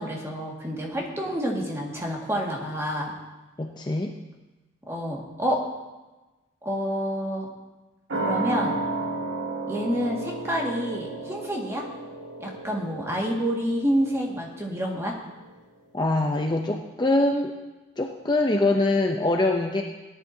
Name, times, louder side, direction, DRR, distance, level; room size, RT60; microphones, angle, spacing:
voice 1, 0.0-3.1 4.9-5.6 6.6-7.5 8.2-8.8 9.7-11.9 12.4-15.1, equal, 15° right, -2 dB, 1.9 m, -28 dB
voice 2, 3.6-4.1 15.9-17.5 18.0-19.8, left 2 dB, 20° left, 2 dB, 0.6 m, -23 dB
sound 1, 8.1-15.2 15.5-15.6, right 2 dB, 70° right, 2.0 m, -33 dB
17.5 x 10.5 x 2.8 m, 1.1 s
head